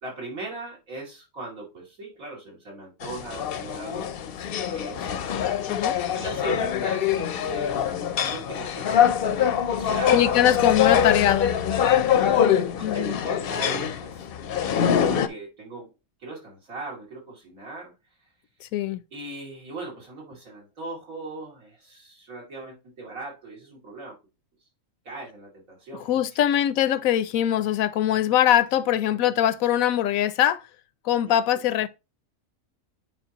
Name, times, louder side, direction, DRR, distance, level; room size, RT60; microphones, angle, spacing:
voice 1, 0.0-5.2 6.1-7.8 8.2-8.9 9.7-10.3 10.8-11.0 12.1-12.5 12.8-15.9 16.2-17.9 19.1-24.2 25.0-26.1 26.4-26.5 28.9-29.1 31.3-31.7, right 2 dB, 80° right, 3.1 m, -39 dB
sound 1, 3.0-15.3, left 9 dB, 60° left, 0.6 m, -24 dB
voice 2, 5.7-6.0 10.1-11.5 12.8-13.2 18.6-19.0 26.0-30.6 31.0-31.9, left 11 dB, 85° left, 1.0 m, -22 dB
9.1 x 4.6 x 2.9 m
omnidirectional pair, 1.4 m